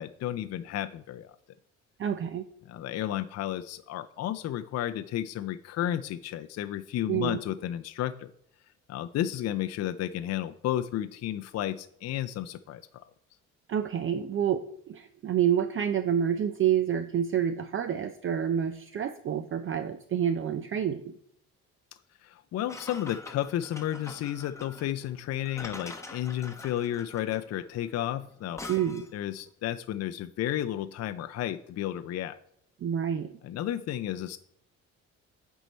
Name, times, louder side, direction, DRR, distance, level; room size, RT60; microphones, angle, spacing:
voice 1, 0.0-1.4 2.7-8.3 8.9-13.0 22.2-28.6 29.1-32.4 33.4-34.4, left 12 dB, 55° left, 10 dB, 0.4 m, -32 dB
voice 2, 2.0-2.5 7.1-7.4 13.7-21.1 28.7-29.1 32.8-33.3, right 9 dB, 45° right, 10 dB, 0.5 m, -28 dB
sound 1, 22.7-29.2, left 2 dB, 10° left, 1.0 m, -45 dB
8.0 x 4.6 x 4.3 m, 0.72 s
cardioid pair, 90°, 30 cm